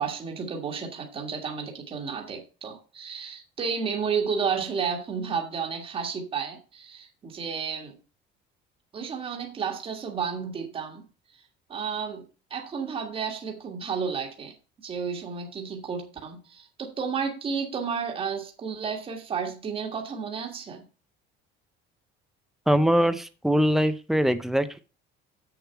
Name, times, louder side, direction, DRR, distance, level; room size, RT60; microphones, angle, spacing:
voice 1, 0.0-8.0 8.9-11.0 11.7-12.2 12.5-14.5 14.8-20.9, right 6 dB, 25° right, 1.7 m, -32 dB
voice 2, 22.7-24.8, equal, ahead, 0.5 m, -22 dB
7.8 x 6.9 x 4.5 m
cardioid pair, 170°, 21 cm